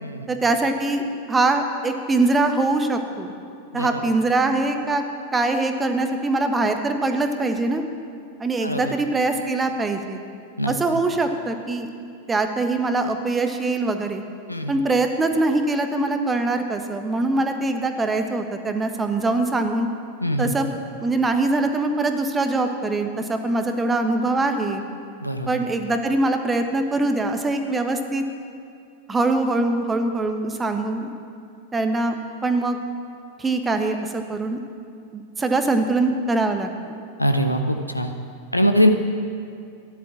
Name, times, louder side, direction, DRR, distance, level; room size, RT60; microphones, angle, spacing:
voice 1, 0.3-3.3 3.7-5.0 5.3-7.8 8.4-10.2 10.7-11.9 12.3-14.2 14.7-19.9 20.4-20.7 21.0-24.8 25.5-28.2 29.1-31.1 31.7-32.2 32.4-32.8 33.4-34.6 35.1-37.0, right 2 dB, 15° right, 6 dB, 1.3 m, -23 dB
voice 2, 3.7-4.1 8.6-8.9 10.6-10.7 14.5-14.7 20.2-20.5 25.2-25.5 37.2-38.1 38.5-38.9, equal, 90° left, 6 dB, 1.0 m, -22 dB
14.5 x 11.0 x 7.1 m, 2.4 s
figure-of-eight pair, 90°, 0 cm